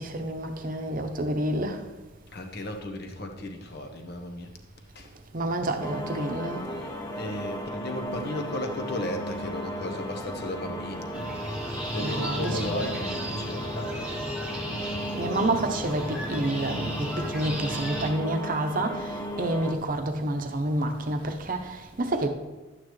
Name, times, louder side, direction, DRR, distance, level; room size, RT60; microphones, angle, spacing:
voice 1, 0.0-1.8 5.3-6.6 12.0-12.7 15.2-22.3, right 1 dB, 40° right, 0.8 m, -29 dB
voice 2, 2.3-4.5 4.9-5.1 6.7-11.2 11.9-14.2, left 1 dB, 50° left, 1.1 m, -35 dB
sound 1, 5.8-19.7, equal, 15° left, 0.8 m, -35 dB
sound 2, 11.1-18.1, equal, 5° right, 1.1 m, -35 dB
12.0 x 8.7 x 3.2 m
head